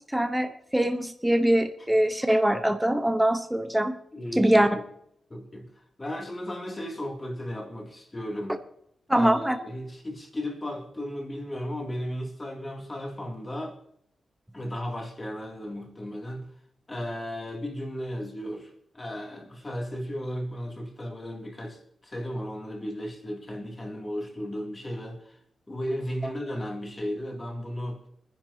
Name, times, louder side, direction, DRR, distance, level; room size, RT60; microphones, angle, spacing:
voice 1, 0.1-4.0 4.4-4.7 9.1-9.6, right 1 dB, 5° right, 0.9 m, -23 dB
voice 2, 4.1-4.8 5.3-5.7 6.0-8.6 9.1-13.8 14.5-16.5 16.9-25.4 25.7-28.0, equal, 25° left, 2.5 m, -35 dB
24.0 x 10.5 x 2.8 m
wide cardioid pair, 130°, 0 cm